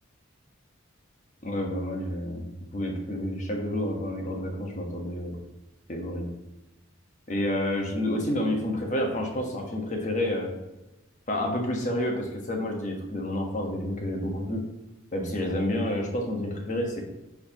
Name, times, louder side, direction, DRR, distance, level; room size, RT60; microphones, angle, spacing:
voice 1, 1.4-5.4 5.9-6.3 7.3-10.5 11.3-14.6 15.1-17.0, left 1 dB, 40° left, 1 dB, 1.3 m, -29 dB
9.5 x 4.5 x 3.0 m, 0.98 s
head